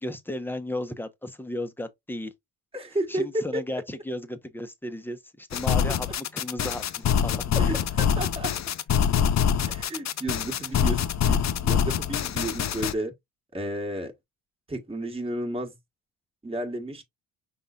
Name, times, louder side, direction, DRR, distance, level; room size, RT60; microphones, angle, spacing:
voice 1, 0.0-2.3 3.1-7.7, left 1 dB, 5° left, 1.0 m, -35 dB
voice 2, 2.7-3.8 7.5-8.5 9.7-13.1 13.5-14.1 14.7-15.7 16.4-17.0, right 1 dB, 15° right, 1.5 m, -32 dB
sound 1, 5.5-12.9, left 8 dB, 45° left, 0.6 m, -25 dB
5.5 x 3.9 x 2.4 m
supercardioid pair, 65°, 39 cm